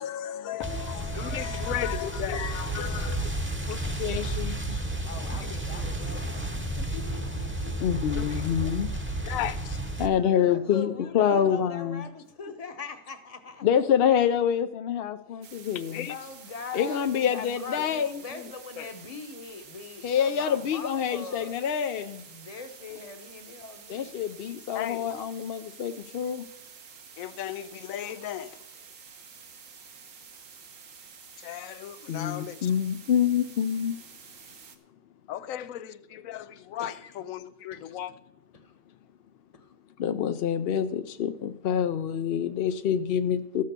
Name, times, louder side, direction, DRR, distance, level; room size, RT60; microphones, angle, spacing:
voice 1, 0.0-3.4 3.7-5.1 7.8-8.9 10.0-12.0 13.6-16.1 16.7-18.1 20.0-22.2 23.9-26.5 32.1-34.0 40.0-43.6, left 8 dB, 60° left, 0.6 m, -27 dB
sound 1, 0.6-10.1, right 1 dB, 10° right, 0.8 m, -32 dB
voice 2, 0.9-2.4 5.3-5.9 8.1-8.4 9.2-9.7 15.7-16.2 17.8-17.9 18.3-18.9 24.7-25.2 27.2-28.7 31.4-32.7 35.3-38.1, left 11 dB, 85° left, 1.0 m, -36 dB
voice 3, 5.1-7.8 8.6-8.8 9.1-9.4 10.1-13.7 15.3-15.6 16.1-21.6 22.3-24.1 36.8-37.1 37.7-37.9 38.5-38.8 39.5-39.8, left 4 dB, 30° left, 1.0 m, -42 dB
sound 2, 15.4-34.8, right 6 dB, 80° right, 1.4 m, -49 dB
13.5 x 6.6 x 6.7 m
omnidirectional pair, 1.4 m